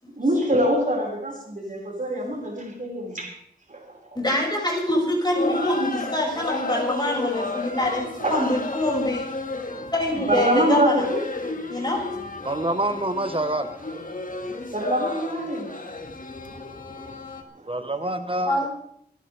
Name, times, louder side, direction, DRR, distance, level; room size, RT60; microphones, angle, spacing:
voice 1, 0.2-3.4 3.7-3.9 8.2-8.4 10.3-11.2 14.7-15.7, right 1 dB, 50° right, -2 dB, 5.6 m, -24 dB
voice 2, 4.1-9.2 9.7-11.1 11.7-12.0 18.5-18.7, left 1 dB, 25° left, -2 dB, 6.3 m, -25 dB
sound 1, 5.3-17.4, left 3 dB, 50° left, 2.1 m, -32 dB
voice 3, 12.4-13.7 17.7-18.7, right 1 dB, 30° right, 8 dB, 1.2 m, -26 dB
27.5 x 11.5 x 3.5 m, 0.67 s
wide cardioid pair, 75°, 17 cm